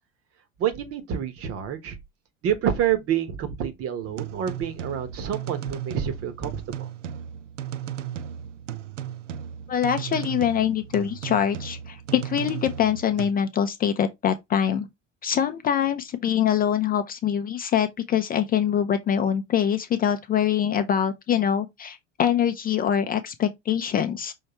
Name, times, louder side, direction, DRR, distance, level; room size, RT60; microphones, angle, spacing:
voice 1, 0.6-2.0 2.4-6.9, right 9 dB, 40° right, 1.1 m, -28 dB
sound 1, 4.0-13.3, right 10 dB, 80° right, 0.5 m, -35 dB
voice 2, 9.7-14.9 15.2-24.3, left 9 dB, 25° left, 0.5 m, -24 dB
5.5 x 3.1 x 2.9 m
figure-of-eight pair, 75°, 36 cm